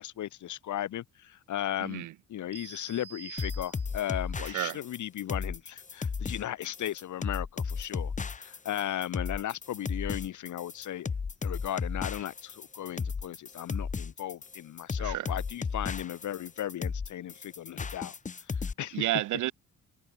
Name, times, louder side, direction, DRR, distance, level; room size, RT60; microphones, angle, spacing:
voice 1, 0.0-11.1 11.4-18.1 18.4-19.1, left 12 dB, 75° left, 4.6 m, -36 dB
voice 2, 1.8-2.1 4.5-4.8 15.0-15.3 18.9-19.5, right 15 dB, 80° right, 1.0 m, -31 dB
sound 1, 2.5-4.2, right 8 dB, 55° right, 7.3 m, -47 dB
sound 2, 3.4-18.7, left 5 dB, 25° left, 0.9 m, -34 dB
cardioid pair, 90°, 30 cm